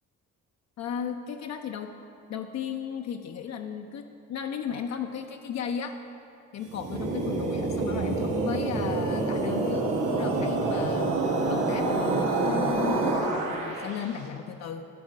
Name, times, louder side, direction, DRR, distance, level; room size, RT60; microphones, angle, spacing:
voice 1, 0.8-1.9 2.3-6.0 6.5-9.9 10.2-11.1 11.5-15.0, left 7 dB, 60° left, 5 dB, 0.5 m, -35 dB
sound 1, 6.6-14.0, right 3 dB, 90° right, 1.4 m, -27 dB
11.0 x 4.4 x 6.4 m, 2.7 s
cardioid pair, 90°, 30 cm